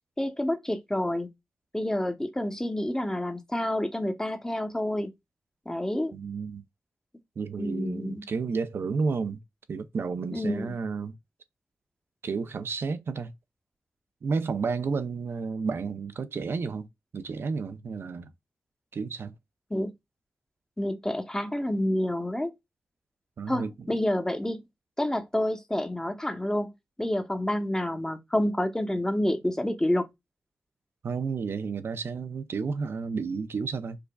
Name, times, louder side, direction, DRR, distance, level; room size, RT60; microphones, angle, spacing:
voice 1, 0.2-1.3 1.7-5.1 5.7-6.1 7.6-8.2 10.3-10.7 19.7-19.9 20.8-22.5 23.5-24.6 25.0-26.7 27.0-30.1, left 1 dB, 15° left, 0.8 m, -28 dB
voice 2, 6.1-6.6 7.4-9.4 9.7-11.2 12.2-13.3 14.2-16.9 17.1-18.3 18.9-19.3 23.4-23.9 31.0-34.0, right 5 dB, 65° right, 0.4 m, -31 dB
4.7 x 2.3 x 2.2 m
supercardioid pair, 40°, 4 cm